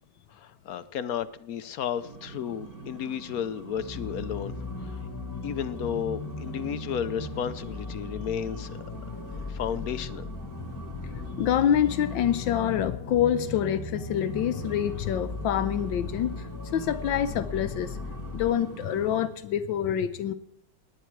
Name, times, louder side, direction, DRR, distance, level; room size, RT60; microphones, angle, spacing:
voice 1, 0.3-4.5 5.4-8.9 9.5-10.3, left 8 dB, 60° left, 13 dB, 1.0 m, -33 dB
sound 1, 1.9-13.0 14.1-19.3, right 4 dB, 50° right, 2.3 m, -45 dB
sound 2, 3.7-18.5, left 3 dB, 15° left, 0.9 m, -37 dB
voice 2, 11.4-18.0 18.3-20.3, left 10 dB, 80° left, 11 dB, 1.4 m, -26 dB
19.0 x 10.0 x 4.7 m, 0.77 s
omnidirectional pair, 2.1 m